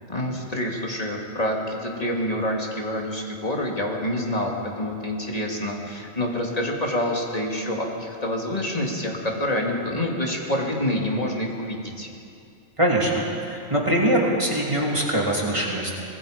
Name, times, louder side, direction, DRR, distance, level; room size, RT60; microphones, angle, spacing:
voice 1, 0.1-12.1, left 1 dB, 30° left, -1 dB, 2.7 m, -27 dB
voice 2, 12.8-15.9, right 1 dB, 25° right, -3 dB, 3.1 m, -23 dB
25.5 x 20.0 x 5.2 m, 2.5 s
omnidirectional pair, 1.4 m